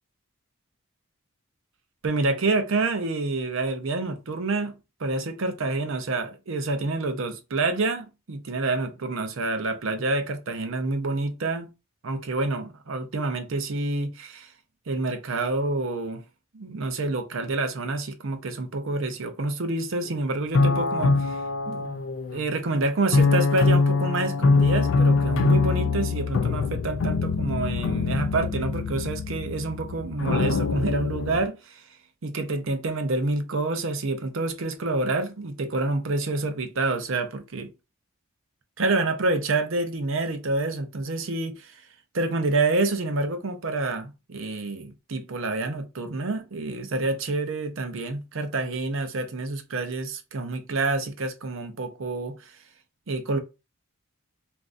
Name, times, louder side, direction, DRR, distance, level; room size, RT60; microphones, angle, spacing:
voice 1, 2.0-11.7 12.0-14.5 14.9-16.2 16.5-22.0 22.3-31.8 32.2-37.7 38.8-41.8 42.1-52.5 53.1-53.4, right 2 dB, 60° right, 0.6 m, -28 dB
sound 1, 20.1-20.2 20.5-22.6 23.1-31.4, left 4 dB, 60° left, 0.3 m, -23 dB
3.5 x 2.5 x 2.5 m
head